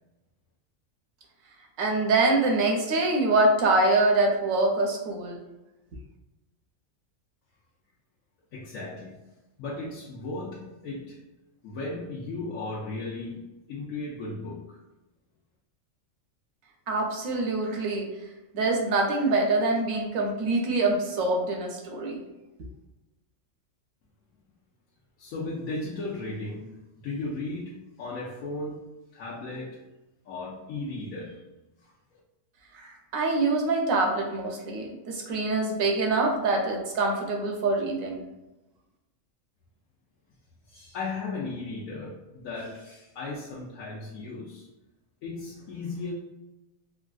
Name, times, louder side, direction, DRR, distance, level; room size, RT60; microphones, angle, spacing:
voice 1, 1.8-5.4 16.9-18.1 18.5-22.2 32.7-38.2, right 2 dB, 80° right, 1 dB, 1.1 m, -25 dB
voice 2, 8.5-9.2 9.6-11.2 11.6-14.8 25.2-26.7 27.0-29.8 30.2-31.4 31.8-32.2 40.7-44.7 45.2-46.1, left 3 dB, 80° left, -6 dB, 1.1 m, -36 dB
3.3 x 2.5 x 2.3 m, 1.0 s
omnidirectional pair, 1.4 m